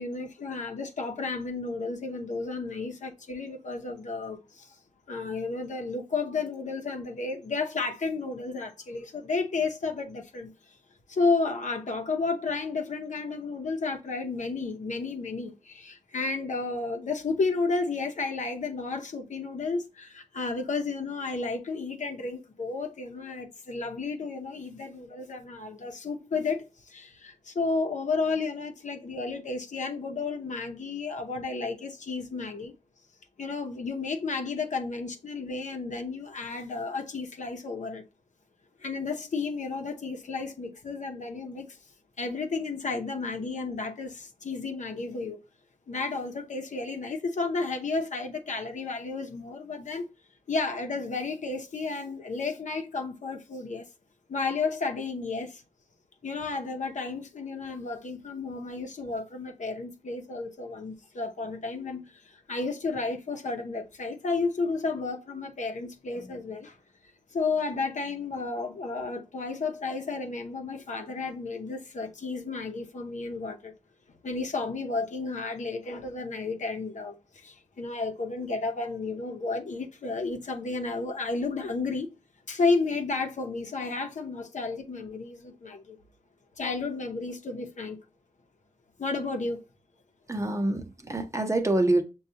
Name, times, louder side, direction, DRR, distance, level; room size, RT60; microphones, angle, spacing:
voice 1, 0.0-4.7 5.1-10.5 11.1-32.7 33.4-38.0 38.8-41.8 42.2-45.4 45.9-50.1 50.5-53.9 54.3-55.6 56.2-66.8 67.3-73.7 74.2-82.1 82.5-86.0 86.6-88.0 89.0-89.6, left 3 dB, 70° left, 0.8 m, -32 dB
voice 2, 90.3-92.0, right 2 dB, 25° right, 0.7 m, -26 dB
6.5 x 2.3 x 2.8 m
wide cardioid pair, 75°, 13 cm